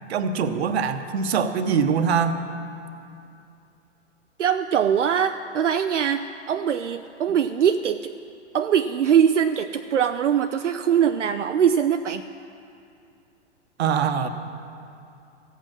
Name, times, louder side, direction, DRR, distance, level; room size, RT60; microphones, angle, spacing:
voice 1, 0.1-2.4 13.8-14.3, right 6 dB, 60° right, 9 dB, 1.0 m, -23 dB
voice 2, 4.4-8.1 8.5-12.2, right 8 dB, 85° right, 8 dB, 0.5 m, -22 dB
15.0 x 8.3 x 7.4 m, 2.6 s
figure-of-eight pair, 110°, 36 cm